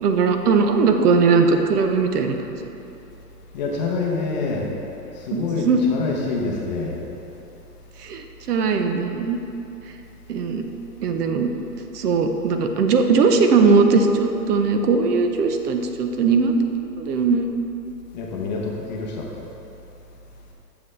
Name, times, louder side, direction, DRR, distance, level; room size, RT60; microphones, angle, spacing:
voice 1, 0.0-2.6 5.3-5.8 8.0-9.4 10.3-10.6 11.0-11.5 11.9-16.5 17.0-17.4, right 4 dB, 70° right, 6 dB, 0.8 m, -19 dB
voice 2, 3.5-4.7 5.2-7.0 18.1-19.5, left 4 dB, 30° left, -2 dB, 0.6 m, -27 dB
7.3 x 6.9 x 3.2 m, 2.9 s
hypercardioid pair, 155°, 49 cm